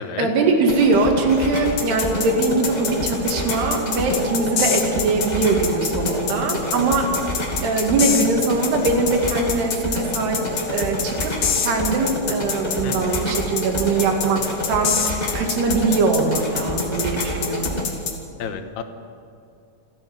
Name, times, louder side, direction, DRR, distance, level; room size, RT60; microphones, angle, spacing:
voice 1, 0.0-7.2 7.6-17.8, right 3 dB, 90° right, 2 dB, 4.4 m, -22 dB
sound 1, 0.6-17.8, left 1 dB, 15° left, 2.0 m, -28 dB
sound 2, 1.8-18.1, left 7 dB, 55° left, 2.8 m, -26 dB
voice 2, 12.8-13.3 18.4-18.8, left 7 dB, 85° left, 7 dB, 3.3 m, -31 dB
28.5 x 9.7 x 9.4 m, 2.4 s
omnidirectional pair, 4.5 m